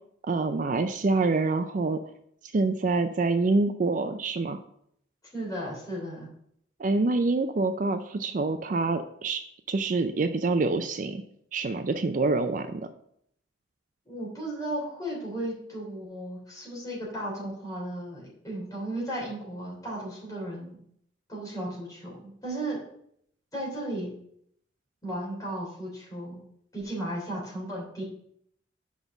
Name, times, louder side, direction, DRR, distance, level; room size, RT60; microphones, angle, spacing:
voice 1, 0.3-2.0 2.5-4.6 6.8-9.4 9.7-11.2 11.5-12.9, right 3 dB, 45° right, 9 dB, 0.4 m, -26 dB
voice 2, 5.3-6.3 14.0-20.8 21.3-22.8 23.5-24.1 25.0-26.4 26.7-28.0, right 1 dB, 20° left, -4 dB, 3.1 m, -35 dB
6.2 x 5.2 x 5.9 m, 0.70 s
head